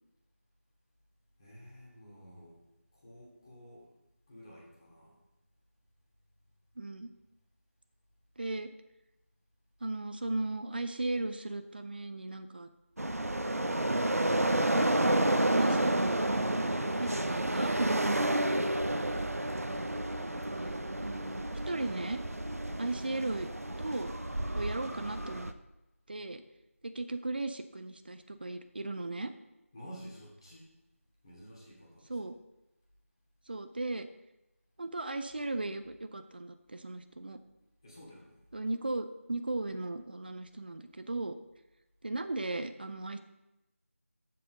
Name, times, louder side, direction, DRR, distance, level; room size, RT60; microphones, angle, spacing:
voice 1, 1.4-2.6 2.9-3.9 4.3-5.2 16.8-17.3 29.7-30.7 31.2-32.2 37.8-38.4, equal, 20° left, -5 dB, 2.8 m, -51 dB
voice 2, 6.8-7.1 8.4-8.7 9.8-12.7 14.0-14.3 15.4-16.1 17.0-18.0 20.5-22.2 22.8-23.5 23.8-24.1 24.5-25.5 26.1-26.4 26.8-29.3 32.1-32.4 33.5-34.1 34.8-37.4 38.5-41.4 42.0-43.2, right 2 dB, 40° right, 9 dB, 0.6 m, -36 dB
sound 1, 13.0-25.5, right 1 dB, 85° right, 0.9 m, -30 dB
12.5 x 7.7 x 4.1 m, 0.96 s
figure-of-eight pair, 170°, 8 cm